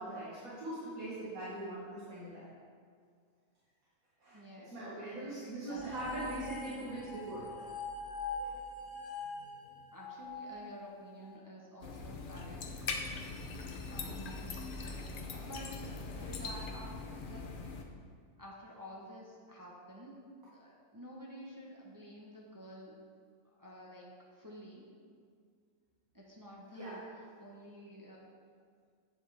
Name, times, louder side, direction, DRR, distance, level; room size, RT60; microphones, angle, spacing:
voice 1, 0.0-2.5 4.2-4.4 4.7-7.6 8.4-8.5 26.7-27.0, right 2 dB, 90° right, -10 dB, 2.1 m, -41 dB
voice 2, 4.3-6.5 9.9-12.7 13.9-17.5 18.4-23.0 23.4-25.0 26.1-28.2, equal, 15° right, -3 dB, 0.8 m, -51 dB
sound 1, 5.7-11.2, left 3 dB, 85° left, 2.0 m, -43 dB
sound 2, 11.8-17.8, left 4 dB, 50° left, 0.7 m, -41 dB
8.8 x 7.4 x 3.4 m, 2.1 s
omnidirectional pair, 1.4 m